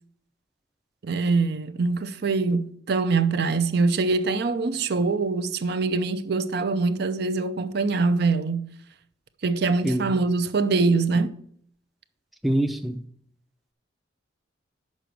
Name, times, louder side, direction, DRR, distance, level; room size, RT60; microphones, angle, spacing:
voice 1, 1.0-8.7 9.4-11.3, right 3 dB, 55° right, 0.5 m, -24 dB
voice 2, 12.4-13.0, right 1 dB, ahead, 0.4 m, -24 dB
6.2 x 5.0 x 6.7 m
head